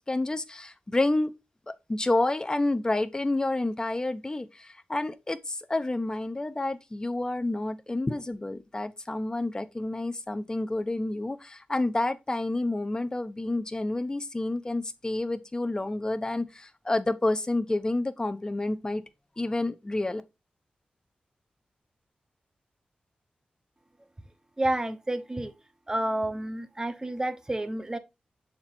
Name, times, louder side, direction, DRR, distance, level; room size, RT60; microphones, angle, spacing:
voice 1, 0.1-1.3 1.9-19.0 19.4-20.2, left 2 dB, 25° left, 0.8 m, -29 dB
voice 2, 24.6-25.5 25.9-28.0, right 1 dB, 20° right, 1.0 m, -30 dB
6.6 x 4.4 x 4.3 m
cardioid pair, 70°, 3 cm